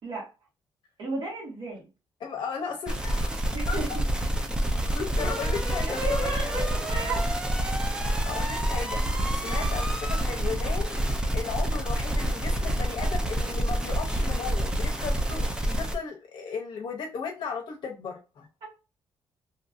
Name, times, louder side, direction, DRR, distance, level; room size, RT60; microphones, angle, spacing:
voice 1, 1.0-1.8 3.5-3.9 5.9-7.3 9.5-9.8 18.6-18.7, right 2 dB, 60° right, 1.5 m, -34 dB
voice 2, 2.2-3.3 3.7-3.8 4.9-6.3 8.0-11.0 11.3-18.5, left 5 dB, 65° left, 0.6 m, -36 dB
sound 1, 2.9-15.9, right 1 dB, 10° right, 0.4 m, -27 dB
2.8 x 2.6 x 2.4 m
cardioid pair, 165°, 9 cm